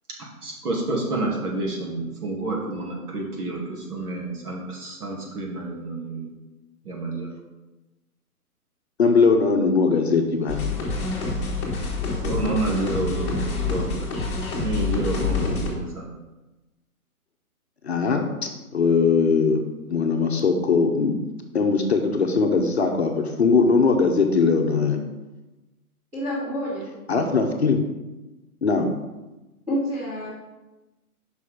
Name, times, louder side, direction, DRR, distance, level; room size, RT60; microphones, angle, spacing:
voice 1, 0.2-6.3 6.8-7.3 12.2-14.1 14.6-16.1, right 2 dB, 80° right, -2 dB, 2.5 m, -29 dB
voice 2, 9.0-10.6 17.8-19.6 19.9-21.1 21.5-25.0 27.1-27.8 28.6-28.9, left 4 dB, 45° left, 3 dB, 0.8 m, -20 dB
sound 1, 10.5-15.7, left 3 dB, 20° left, 1.3 m, -27 dB
voice 3, 26.1-26.9 29.7-30.3, equal, 5° right, -10 dB, 1.4 m, -28 dB
6.2 x 5.4 x 4.9 m, 1.1 s
hypercardioid pair, 175°, 45 cm